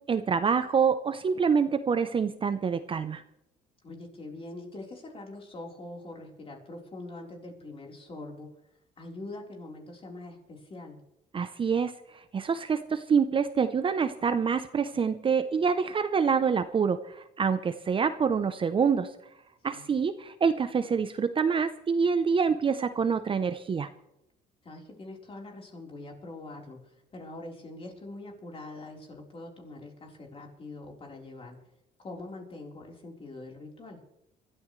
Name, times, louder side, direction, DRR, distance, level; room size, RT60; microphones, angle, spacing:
voice 1, 0.1-3.2 11.3-11.9 12.3-19.1 19.6-23.9, right 6 dB, 30° right, 11 dB, 0.7 m, -26 dB
voice 2, 3.8-8.5 9.0-11.0 19.7-20.0 24.6-31.6 32.0-34.0, left 2 dB, 35° left, 1 dB, 4.0 m, -43 dB
24.5 x 13.5 x 3.2 m, 0.84 s
cardioid pair, 110°, 17 cm